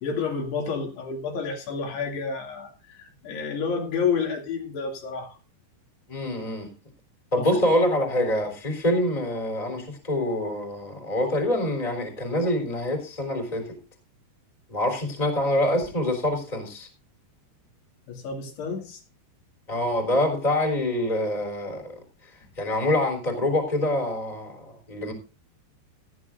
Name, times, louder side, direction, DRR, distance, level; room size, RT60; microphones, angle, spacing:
voice 1, 0.0-5.4 7.4-7.5 18.1-19.0, left 5 dB, 70° left, 4.5 m, -30 dB
voice 2, 6.1-6.7 7.3-13.7 14.7-16.9 19.7-22.0 22.6-25.1, left 1 dB, 10° left, 3.1 m, -25 dB
16.5 x 14.0 x 2.6 m
omnidirectional pair, 5.0 m